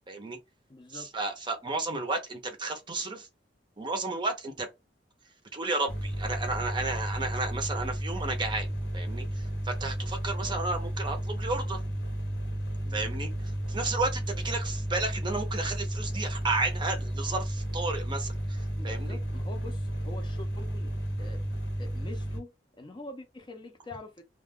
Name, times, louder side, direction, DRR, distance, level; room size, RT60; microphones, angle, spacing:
voice 1, 0.1-0.4 0.9-3.3 3.8-4.7 5.5-8.7 8.9-11.8 12.9-13.3 13.7-19.2, right 3 dB, 25° right, 0.6 m, -32 dB
voice 2, 0.7-1.1 10.3-10.6 12.8-13.1 18.8-21.4 21.8-22.5 22.8-24.2, left 2 dB, 25° left, 0.5 m, -45 dB
sound 1, 5.9-22.4, right 1 dB, 85° left, 0.9 m, -33 dB
2.4 x 2.2 x 3.4 m
head